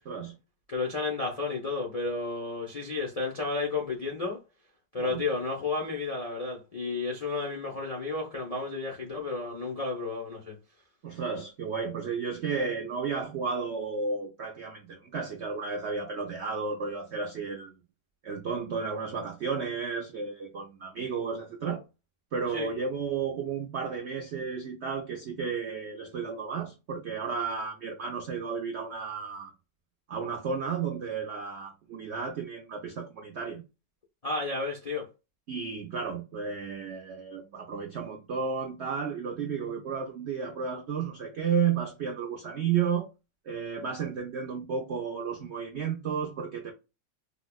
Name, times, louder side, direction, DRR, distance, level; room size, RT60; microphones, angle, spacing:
voice 1, 0.7-4.4 4.9-10.5 22.5-22.7 34.2-35.1, left 3 dB, 55° left, 0.4 m, -32 dB
voice 2, 11.0-17.8 18.2-21.8 22.3-29.5 30.1-33.6 35.5-43.1 43.5-46.7, right 6 dB, 85° right, 0.6 m, -33 dB
5.3 x 2.1 x 2.2 m
omnidirectional pair, 1.9 m